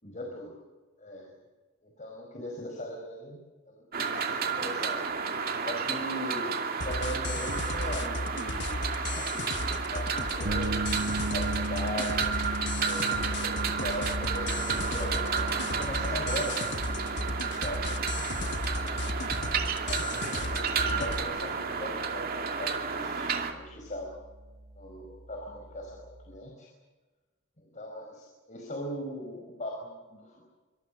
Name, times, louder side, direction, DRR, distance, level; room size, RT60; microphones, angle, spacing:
voice 1, 0.0-0.6 1.0-1.3 2.0-3.4 3.7-5.1 5.6-8.8 9.2-10.9 11.3-12.4 12.8-17.8 18.7-19.1 19.9-24.2 24.8-26.7 27.6-30.4, equal, 40° left, 0 dB, 5.4 m, -39 dB
sound 1, 3.9-23.5, right 5 dB, 50° right, 2.5 m, -32 dB
sound 2, 6.8-21.2, left 2 dB, 60° left, 1.5 m, -35 dB
sound 3, 10.4-26.4, right 2 dB, 70° right, 1.0 m, -40 dB
26.0 x 25.5 x 6.4 m, 1.3 s
head